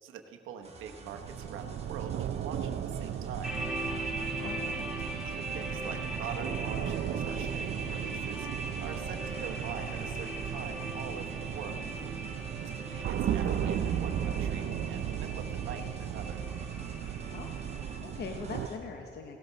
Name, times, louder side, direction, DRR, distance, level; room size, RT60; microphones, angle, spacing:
voice 1, 0.0-3.5 4.7-4.9 5.2-8.5 8.8-11.9 12.6-16.4, right 6 dB, 85° right, 4 dB, 1.0 m, -44 dB
sound 1, 0.6-18.8, right 3 dB, 30° right, 1.6 m, -50 dB
sound 2, 1.1-18.7, right 9 dB, 60° right, 0.5 m, -36 dB
sound 3, 3.4-18.0, right 1 dB, 5° right, 3.1 m, -40 dB
voice 2, 4.3-4.8 17.3-17.5 17.8-19.4, left 5 dB, 55° left, 4 dB, 0.9 m, -42 dB
17.0 x 13.0 x 4.0 m, 3.0 s
cardioid pair, 90°, 20 cm